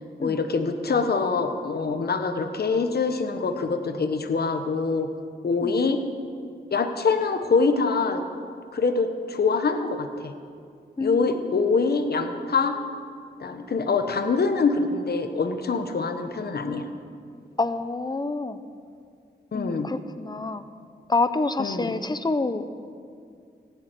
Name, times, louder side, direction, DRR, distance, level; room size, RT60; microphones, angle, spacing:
voice 1, 0.2-5.1 5.4-6.0 6.7-8.2 8.7-10.3 11.0-12.8 13.4-16.9 19.5-19.9 21.6-22.0, left 4 dB, 60° left, 7 dB, 1.1 m, -24 dB
voice 2, 11.0-11.6 17.6-18.6 19.5-20.6 21.1-22.7, left 3 dB, 25° left, 11 dB, 0.7 m, -27 dB
16.0 x 7.2 x 9.1 m, 2.3 s
wide cardioid pair, 90°, 18 cm